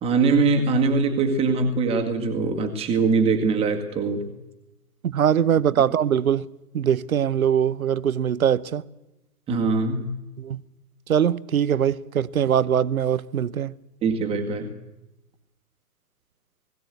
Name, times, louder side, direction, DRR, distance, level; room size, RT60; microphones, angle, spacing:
voice 1, 0.0-4.3 9.5-10.1 14.0-14.7, right 4 dB, 10° right, 1.9 m, -22 dB
voice 2, 5.0-6.5 6.7-8.8 10.4-10.6 11.1-13.7, right 9 dB, 60° right, 0.8 m, -22 dB
20.5 x 16.0 x 8.2 m
figure-of-eight pair, 125°, 47 cm